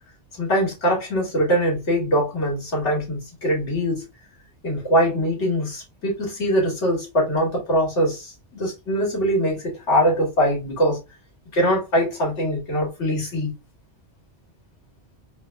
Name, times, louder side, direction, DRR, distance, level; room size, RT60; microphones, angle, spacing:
voice 1, 0.4-4.0 4.6-11.0 11.5-13.5, equal, 75° left, 2.2 m, -22 dB
4.0 x 2.2 x 3.2 m
omnidirectional pair, 1.2 m